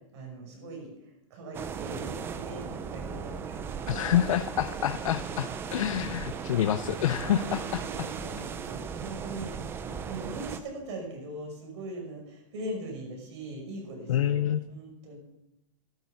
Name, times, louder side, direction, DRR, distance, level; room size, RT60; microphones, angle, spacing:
voice 1, 0.1-4.3 7.3-15.2, right 1 dB, 60° right, 0 dB, 6.0 m, -41 dB
sound 1, 1.5-10.6, right 6 dB, 15° right, 0.6 m, -37 dB
voice 2, 3.9-8.1 14.1-14.6, left 11 dB, 80° left, 11 dB, 0.7 m, -28 dB
12.0 x 10.5 x 7.1 m, 0.87 s
supercardioid pair, 165°, 17 cm